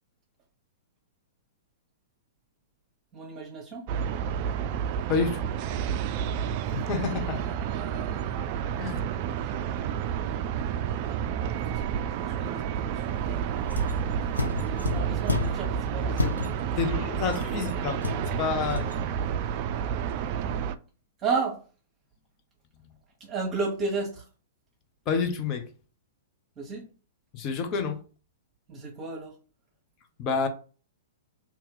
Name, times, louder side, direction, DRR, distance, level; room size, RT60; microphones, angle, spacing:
voice 1, 3.1-3.8 7.7-8.2 11.7-11.8 12.1-13.4 14.1-16.4 16.9-17.0 17.5-17.7 21.2-21.6 23.2-24.3 26.6-26.8 28.7-29.3, right 4 dB, 25° right, 1.2 m, -33 dB
sound 1, 3.9-20.8, right 8 dB, 45° right, 0.3 m, -30 dB
voice 2, 5.1-5.4 6.7-7.4 8.8-9.0 16.8-18.0 18.4-19.0 25.1-25.6 27.3-28.0 30.2-30.5, left 5 dB, 35° left, 0.7 m, -28 dB
sound 2, 13.7-15.7 16.1-16.8 17.3-19.1, left 3 dB, 90° left, 0.6 m, -32 dB
2.9 x 2.8 x 3.7 m
figure-of-eight pair, 110°, 0 cm